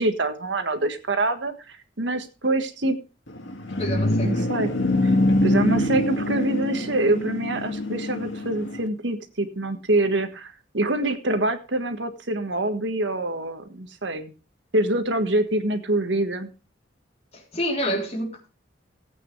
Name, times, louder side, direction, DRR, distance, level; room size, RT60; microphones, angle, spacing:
voice 1, 0.0-3.0 4.2-4.7 5.0-5.1 5.4-14.3 14.7-16.5, right 2 dB, 75° right, 1.6 m, -25 dB
sound 1, 3.3-8.9, left 1 dB, 90° left, 2.1 m, -24 dB
voice 2, 3.8-4.5 17.3-18.5, equal, 35° left, 3.5 m, -28 dB
18.0 x 8.8 x 3.3 m
head